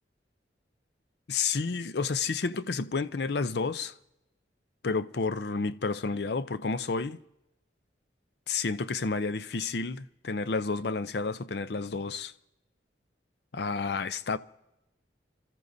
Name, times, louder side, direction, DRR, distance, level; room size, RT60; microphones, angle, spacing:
voice 1, 1.3-3.9 4.8-7.2 8.5-12.3 13.5-14.4, left 4 dB, 65° left, 0.5 m, -30 dB
27.5 x 14.0 x 2.7 m
head